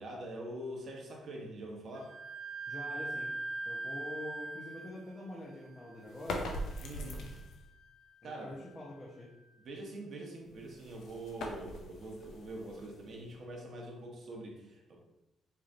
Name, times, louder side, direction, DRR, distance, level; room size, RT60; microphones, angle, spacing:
voice 1, 0.0-2.1 6.8-7.3 8.2-8.6 9.6-15.0, right 1 dB, 55° right, 0 dB, 1.0 m, -44 dB
Wind instrument woodwind instrument, 1.9-9.4, right 2 dB, 80° right, 0.5 m, -43 dB
voice 2, 2.7-3.3 3.6-6.4 8.2-9.3, left 1 dB, 25° left, -5 dB, 0.9 m, -45 dB
sound 1, 6.1-7.7 10.4-13.4, left 1 dB, 75° left, 0.6 m, -42 dB
4.6 x 3.1 x 2.6 m, 0.94 s
cardioid pair, 90°, 0 cm